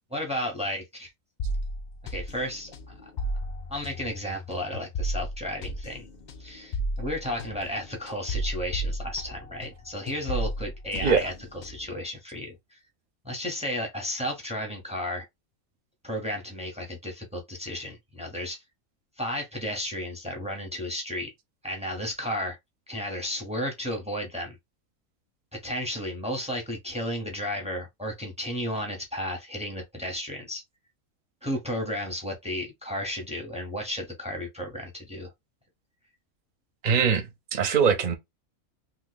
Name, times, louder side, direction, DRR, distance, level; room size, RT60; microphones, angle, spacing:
voice 1, 0.1-1.1 2.1-2.9 3.7-6.1 6.4-12.8 13.2-15.3 16.0-18.6 19.2-21.3 21.6-22.6 22.9-24.6 25.5-30.6 31.4-35.3, left 1 dB, 5° right, 0.7 m, -33 dB
sound 1, 1.4-9.8 10.1-12.0, equal, 75° left, 0.4 m, -34 dB
voice 2, 36.8-38.2, right 6 dB, 45° right, 0.6 m, -22 dB
2.9 x 2.2 x 3.9 m
omnidirectional pair, 1.4 m